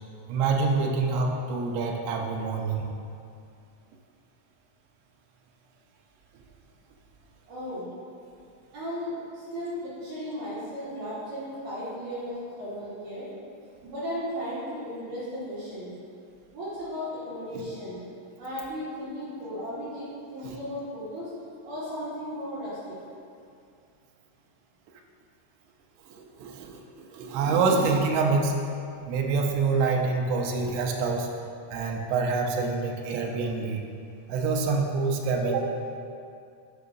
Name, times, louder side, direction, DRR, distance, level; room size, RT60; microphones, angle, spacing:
voice 1, 0.3-2.8 17.5-17.6 20.4-20.6 26.0-28.5 29.1-31.3 31.7-33.8 34.3-35.7, right 4 dB, 80° right, 1 dB, 2.9 m, -26 dB
voice 2, 7.5-7.9 8.7-13.3 13.8-15.9 16.5-18.0 18.4-21.3 21.7-23.0, equal, 60° right, -11 dB, 3.0 m, -35 dB
10.5 x 5.7 x 2.6 m, 2.4 s
omnidirectional pair, 5.5 m